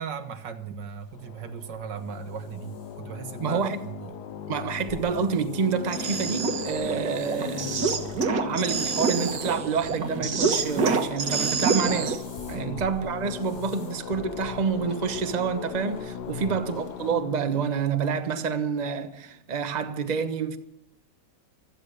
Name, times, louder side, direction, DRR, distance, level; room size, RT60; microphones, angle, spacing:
voice 1, 0.0-4.2 12.5-12.8 16.3-16.6, right 6 dB, 85° right, 2.0 m, -37 dB
sound 1, 1.0-17.1, equal, 35° left, 5.8 m, -50 dB
sound 2, 1.1-19.3, left 9 dB, 70° left, 1.3 m, -39 dB
voice 2, 3.4-3.8 4.5-7.8 8.4-20.6, right 6 dB, 30° right, 1.0 m, -28 dB
sound 3, 5.8-12.2, right 4 dB, 65° right, 1.9 m, -27 dB
16.0 x 13.0 x 6.7 m
omnidirectional pair, 1.8 m